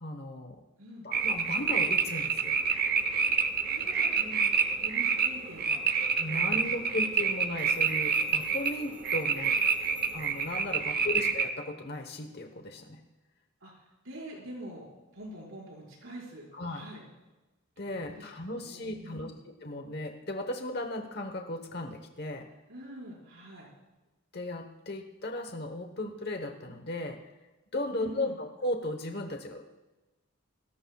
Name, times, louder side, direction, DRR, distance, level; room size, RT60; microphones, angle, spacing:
voice 1, 0.0-0.6 1.0-2.6 6.2-9.6 10.1-13.0 16.5-16.9 17.8-22.5 24.3-27.2 27.7-29.6, left 1 dB, 50° left, 5 dB, 1.1 m, -36 dB
sound 1, 1.1-11.5, right 6 dB, 45° right, 0.9 m, -28 dB
voice 2, 3.7-4.5 4.8-5.9 6.3-6.6 10.6-11.2 13.6-17.0 17.8-19.3 22.7-23.7 27.9-28.4, equal, 80° right, -4 dB, 5.5 m, -46 dB
sound 2, 7.6-10.7, right 1 dB, 5° right, 3.3 m, -56 dB
28.5 x 14.0 x 2.4 m, 1.1 s
head